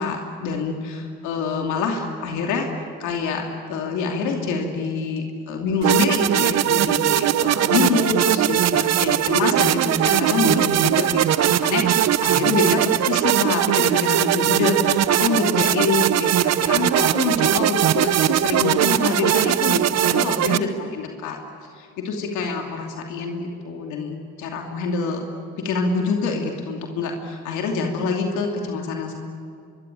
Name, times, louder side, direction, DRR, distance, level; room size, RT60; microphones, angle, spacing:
voice 1, 0.0-2.7 3.0-21.4 21.7-25.2 25.6-29.2, left 4 dB, 85° left, 2 dB, 2.9 m, -26 dB
sound 1, 5.8-20.6, right 12 dB, 65° right, 0.8 m, -20 dB
25.5 x 23.0 x 9.3 m, 2.3 s
supercardioid pair, 70°, 29 cm